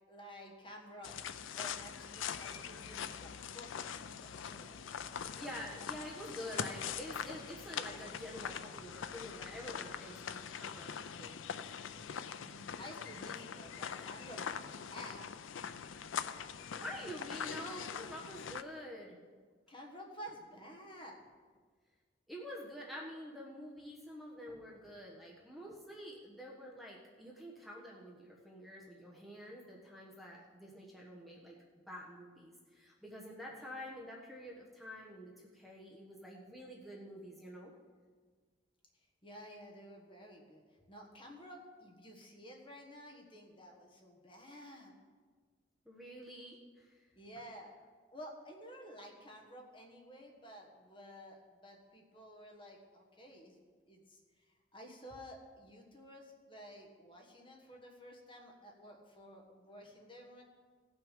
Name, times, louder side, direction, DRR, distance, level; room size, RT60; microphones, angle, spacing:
voice 1, 0.1-5.0 5.8-6.1 6.4-6.8 12.4-15.2 19.7-21.2 39.2-40.6 40.9-44.9 47.1-47.8 48.1-60.4, equal, 25° left, 1 dB, 1.4 m, -52 dB
sound 1, 1.0-18.6, left 7 dB, 90° left, 0.5 m, -43 dB
voice 2, 5.3-11.4 16.7-19.2 22.3-31.6 31.9-37.7 45.8-47.1, equal, ahead, -5 dB, 1.2 m, -48 dB
17.0 x 6.3 x 5.1 m, 1.5 s
head